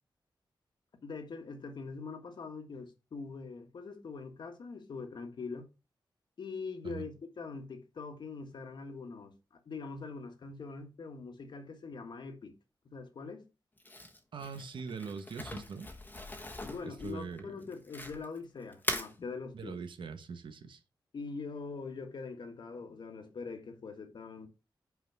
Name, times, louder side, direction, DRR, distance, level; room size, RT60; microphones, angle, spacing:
voice 1, 1.0-5.6 6.4-9.3 9.6-12.5 12.8-13.5 16.6-19.7 21.1-24.5, left 4 dB, 65° left, 1.6 m, -43 dB
Crumpling crinkling, 13.8-18.4 18.7-19.1, left 1 dB, 20° left, 1.2 m, -40 dB
voice 2, 14.3-15.9 16.8-17.6 19.5-20.8, right 5 dB, 75° right, 1.2 m, -42 dB
5.8 x 5.0 x 5.9 m
wide cardioid pair, 165°, 8 cm